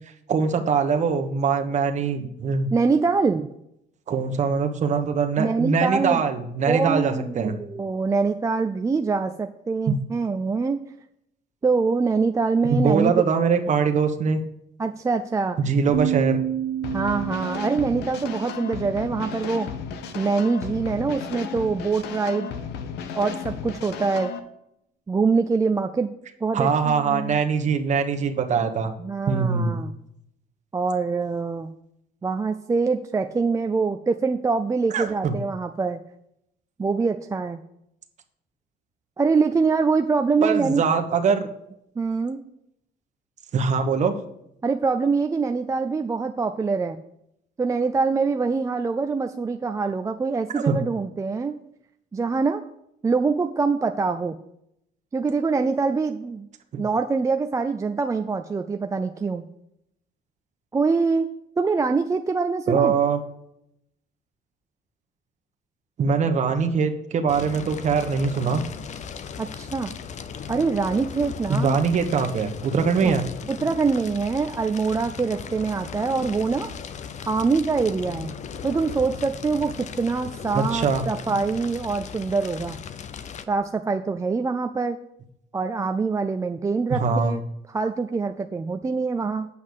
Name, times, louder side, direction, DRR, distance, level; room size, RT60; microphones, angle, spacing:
voice 1, 0.3-2.7 4.1-7.6 9.9-10.0 12.7-14.4 15.6-16.4 26.5-28.9 29.3-29.8 34.9-35.3 40.4-41.5 43.5-44.1 50.5-50.8 56.7-56.8 62.7-63.2 66.0-68.6 71.5-73.2 80.5-81.0 86.9-87.3, right 5 dB, 45° right, 5 dB, 1.2 m, -22 dB
voice 2, 2.7-3.5 5.4-6.2 6.7-10.8 11.6-13.2 14.8-15.6 16.9-19.7 20.1-22.5 23.2-24.3 25.1-26.1 26.4-27.4 29.0-29.9 30.7-31.7 32.2-36.0 36.8-37.6 39.2-40.8 42.0-42.4 44.6-47.0 47.6-51.6 52.1-52.6 53.0-54.4 55.1-56.5 56.8-59.4 60.7-61.3 61.6-62.9 69.4-69.9 70.5-71.8 73.0-73.1 73.5-76.7 77.3-78.3 78.6-82.8 83.5-85.0 85.5-87.4 87.7-89.5, right 4 dB, 20° right, 6 dB, 0.4 m, -24 dB
sound 1, 15.9-19.8, right 11 dB, 65° right, 0.7 m, -30 dB
sound 2, 16.8-24.4, left 7 dB, 80° left, 0.9 m, -34 dB
Fire, 67.3-83.4, left 7 dB, 45° left, 0.6 m, -37 dB
8.5 x 5.5 x 6.3 m, 0.78 s
cardioid pair, 110°, 17 cm